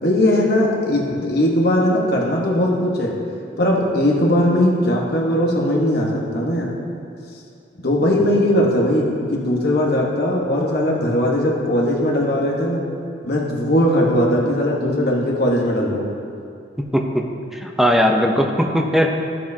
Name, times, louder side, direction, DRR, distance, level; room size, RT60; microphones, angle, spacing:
voice 1, 0.0-3.1 3.6-6.7 7.8-12.8 13.2-16.1, left 1 dB, 55° left, -2 dB, 1.3 m, -19 dB
voice 2, 16.8-17.2 17.5-19.1, equal, ahead, 1 dB, 0.6 m, -18 dB
13.0 x 7.4 x 2.8 m, 2.5 s
head